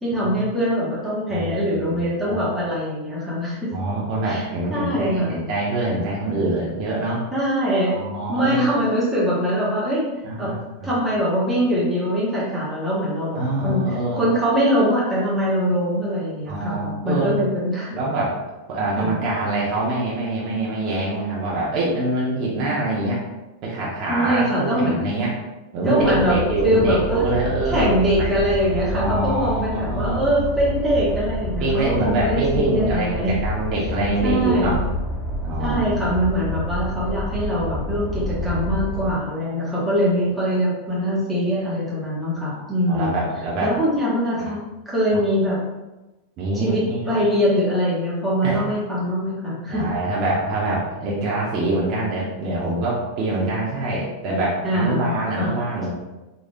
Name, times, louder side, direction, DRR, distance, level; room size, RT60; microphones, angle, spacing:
voice 1, 0.0-3.7 4.2-4.4 4.7-5.4 7.3-7.9 8.3-10.0 10.4-10.5 10.8-13.8 14.1-18.0 19.0-19.1 24.1-25.1 25.8-26.4 26.6-27.3 27.7-33.3 34.2-34.9 35.6-43.1 43.6-45.6 46.5-49.8 54.6-55.5, equal, 5° right, -9 dB, 1.4 m, -22 dB
voice 2, 1.3-2.4 3.7-7.2 7.9-8.7 10.2-10.9 13.4-14.2 16.5-17.4 17.9-18.4 18.7-23.2 23.6-25.3 25.7-27.9 28.2-28.4 28.9-30.2 31.6-34.8 35.4-35.9 39.4-39.7 42.5-42.6 42.9-43.7 44.4-44.5 46.4-47.2 48.4-48.6 49.7-55.9, right 2 dB, 40° right, -6 dB, 1.1 m, -25 dB
sound 1, 26.0-39.1, left 1 dB, 15° left, 0.6 m, -28 dB
4.1 x 3.2 x 2.5 m, 1.0 s
supercardioid pair, 130°, 0 cm